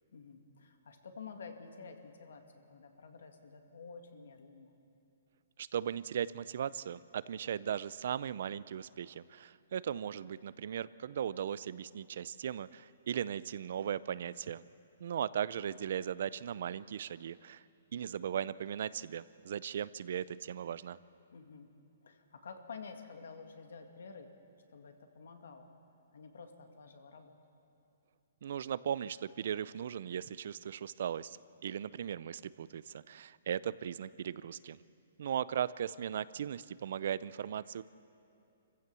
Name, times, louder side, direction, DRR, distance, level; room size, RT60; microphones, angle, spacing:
voice 1, 0.1-4.7 21.3-21.7 22.0-24.3 24.7-25.7 26.1-27.4, left 5 dB, 80° left, 6 dB, 2.1 m, -50 dB
voice 2, 5.6-14.6 15.0-17.6 17.9-21.0 28.4-31.4 31.6-34.8 35.2-37.8, right 9 dB, 60° right, 18 dB, 0.5 m, -37 dB
25.0 x 15.5 x 6.9 m, 2.6 s
hypercardioid pair, 155°, 0 cm